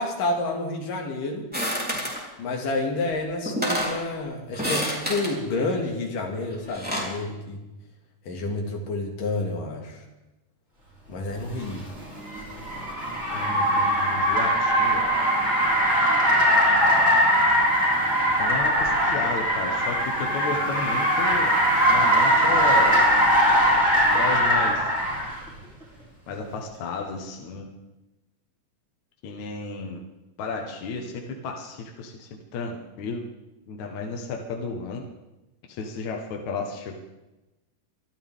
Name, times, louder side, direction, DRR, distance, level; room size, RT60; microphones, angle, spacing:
voice 1, 0.0-1.5 2.4-7.6 8.3-10.0 11.1-11.8, left 2 dB, 85° left, 1 dB, 3.9 m, -29 dB
sound 1, 1.5-2.2 3.1-3.2 3.5-4.0 4.5-5.3 6.5-7.2, equal, 5° right, 3.6 m, -28 dB
Car, 11.4-25.4, equal, 20° right, 6.5 m, -21 dB
voice 2, 13.3-15.1 18.4-21.5 21.9-23.0 24.0-24.9 26.3-27.7 29.2-30.0 30.4-33.2 33.7-35.0 35.7-37.0, left 4 dB, 65° left, 2 dB, 2.8 m, -33 dB
24.5 x 13.0 x 3.7 m, 1.0 s
omnidirectional pair, 3.7 m